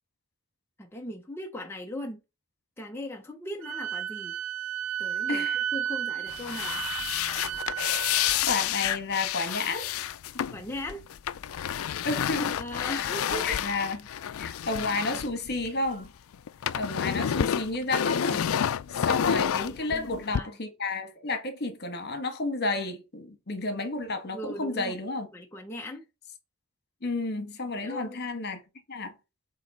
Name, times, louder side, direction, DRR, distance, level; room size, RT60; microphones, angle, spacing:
voice 1, 0.8-2.2 2.8-4.3 5.0-5.5 5.7-6.8 10.5-11.0 12.5-13.6 19.8-20.5 24.3-24.9 25.3-26.0 27.7-28.2, left 1 dB, 10° left, 0.7 m, -38 dB
Wind instrument woodwind instrument, 3.6-8.4, right 10 dB, 70° right, 0.4 m, -33 dB
voice 2, 5.3-5.6 8.4-9.9 12.0-14.0 14.4-16.1 16.7-18.5 18.9-25.3 27.0-28.6 28.9-29.1, left 3 dB, 50° left, 1.4 m, -31 dB
sound 1, 6.3-16.1 16.3-20.4, left 9 dB, 80° left, 0.4 m, -29 dB
7.5 x 3.0 x 4.1 m
head